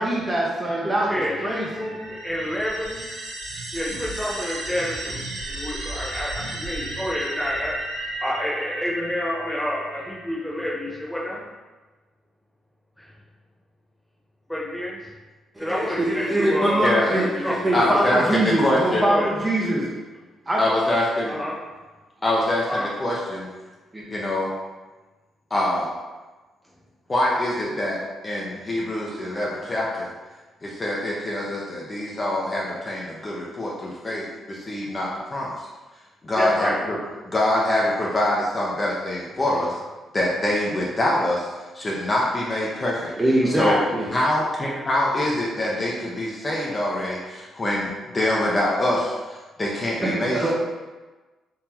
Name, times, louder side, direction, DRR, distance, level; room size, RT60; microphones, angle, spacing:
voice 1, 0.0-1.9 15.6-19.9 20.5-20.6 23.9-24.0 43.2-44.2 50.0-50.5, right 1 dB, 15° right, -5 dB, 0.6 m, -23 dB
voice 2, 1.1-3.0 3.7-5.2 5.4-7.8 8.2-11.4 13.0-13.1 14.5-15.0 15.6-17.0 17.4-18.4 19.1-19.3 21.2-21.6 22.7-22.9 36.4-36.8, left 1 dB, 5° left, -6 dB, 1.1 m, -28 dB
sound 1, 1.3-10.5, right 1 dB, 85° right, 0.7 m, -34 dB
voice 3, 17.7-19.0 20.6-21.4 22.2-23.5 24.1-24.5 25.5-25.9 27.1-30.1 30.6-35.7 36.2-37.0 37.3-39.8 40.1-41.5 41.7-43.1 43.6-43.8 44.1-50.5, left 1 dB, 25° left, -5 dB, 0.6 m, -24 dB
3.8 x 2.8 x 2.8 m, 1.2 s
cardioid pair, 90°, 0 cm